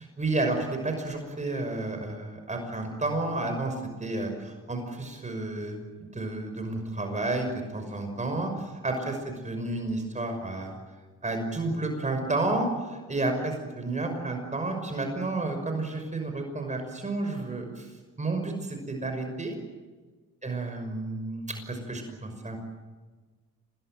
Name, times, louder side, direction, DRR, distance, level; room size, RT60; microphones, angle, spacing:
voice 1, 0.2-10.7 11.2-17.9 18.2-19.6 20.4-22.6, right 2 dB, 25° right, 5 dB, 6.0 m, -31 dB
27.5 x 20.5 x 9.1 m, 1.3 s
cardioid pair, 90°, 30 cm